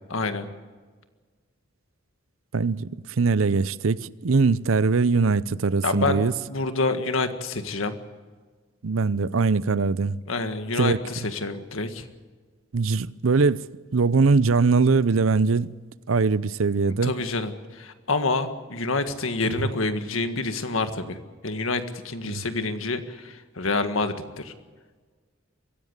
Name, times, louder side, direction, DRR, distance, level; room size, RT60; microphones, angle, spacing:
voice 1, 0.1-0.5 5.8-8.0 10.3-12.1 17.0-21.2 21.4-24.5, left 3 dB, 90° left, 1.8 m, -27 dB
voice 2, 2.5-2.9 3.2-6.3 8.8-10.2 10.8-11.0 12.7-15.7 16.1-17.2 19.5-19.6 22.3-22.4, right 4 dB, 85° right, 0.6 m, -22 dB
23.5 x 16.0 x 8.2 m
head